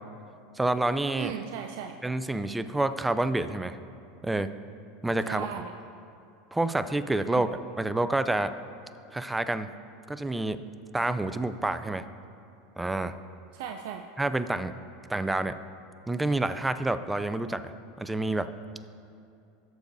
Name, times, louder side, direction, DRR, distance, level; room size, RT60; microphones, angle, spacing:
voice 1, 0.6-1.3 2.0-3.8 4.2-4.5 5.0-5.5 6.5-8.5 9.1-9.7 10.1-10.6 10.9-12.0 12.8-13.1 14.2-14.7 15.1-15.5 16.1-17.7 18.0-18.5, right 2 dB, 10° right, 11 dB, 0.4 m, -28 dB
voice 2, 1.1-1.9 5.3-5.7 7.3-7.5 13.5-14.0, right 8 dB, 70° right, 4 dB, 0.5 m, -36 dB
17.0 x 6.9 x 2.7 m, 2.5 s
supercardioid pair, 105°, 0 cm